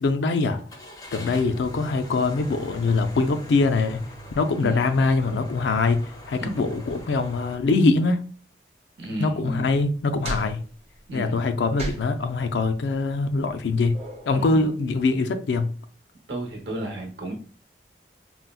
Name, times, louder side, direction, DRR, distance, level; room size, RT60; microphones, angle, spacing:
voice 1, 0.0-0.6 1.1-4.0 4.4-6.0 6.3-8.2 9.2-10.6 11.1-13.9 14.3-15.7, left 3 dB, 90° left, 0.4 m, -23 dB
Car / Engine starting, 0.7-7.5, left 1 dB, 20° left, 0.4 m, -42 dB
voice 2, 6.3-6.7 9.0-9.7 11.1-11.4 14.3-14.7 16.3-17.3, right 1 dB, 85° right, 0.9 m, -33 dB
sound 1, 9.9-14.7, right 1 dB, 35° right, 0.9 m, -38 dB
3.8 x 2.1 x 2.3 m
head